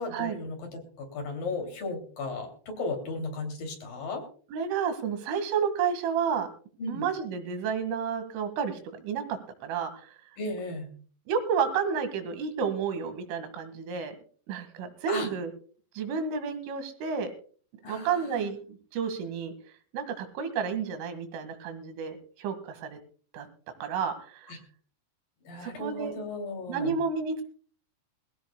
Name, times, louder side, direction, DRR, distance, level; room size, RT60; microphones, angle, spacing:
voice 1, 0.0-4.2 6.8-7.1 10.4-10.9 15.1-15.3 17.8-18.5 24.5-24.6 25.4-27.0, left 3 dB, 50° left, 3 dB, 4.1 m, -35 dB
voice 2, 4.5-6.5 6.9-10.1 11.3-14.2 14.5-15.5 16.0-17.3 17.9-19.5 19.9-23.0 23.3-23.5 23.8-24.5 25.6-26.1 26.7-27.4, right 6 dB, 90° right, 8 dB, 4.4 m, -31 dB
22.0 x 16.0 x 2.2 m, 0.44 s
omnidirectional pair, 5.5 m